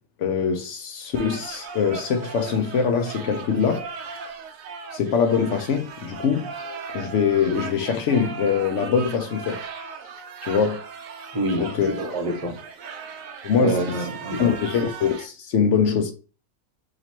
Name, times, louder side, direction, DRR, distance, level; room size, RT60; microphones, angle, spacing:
voice 1, 0.2-3.9 4.9-6.5 6.9-9.6 10.4-10.8 11.6-12.2 13.4-13.8 14.4-16.1, left 6 dB, 65° left, 0.9 m, -23 dB
sound 1, 1.1-15.3, right 5 dB, 70° right, 1.0 m, -37 dB
voice 2, 11.3-12.6 13.6-14.4, right 2 dB, 30° right, 0.8 m, -27 dB
3.0 x 2.9 x 4.3 m
omnidirectional pair, 1.5 m